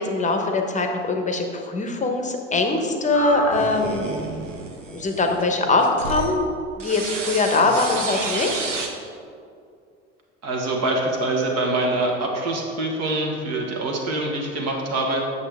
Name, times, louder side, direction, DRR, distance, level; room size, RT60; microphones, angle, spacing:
voice 1, 0.0-4.0 4.9-6.5 6.8-8.6, left 3 dB, 20° left, 3 dB, 1.0 m, -22 dB
sound 1, 3.1-6.3 6.8-8.9, right 3 dB, 90° right, 0.8 m, -31 dB
voice 2, 4.1-4.5 7.6-7.7 10.4-15.2, right 2 dB, 45° right, 0 dB, 1.6 m, -25 dB
8.4 x 6.8 x 3.5 m, 2.4 s
figure-of-eight pair, 70°, 36 cm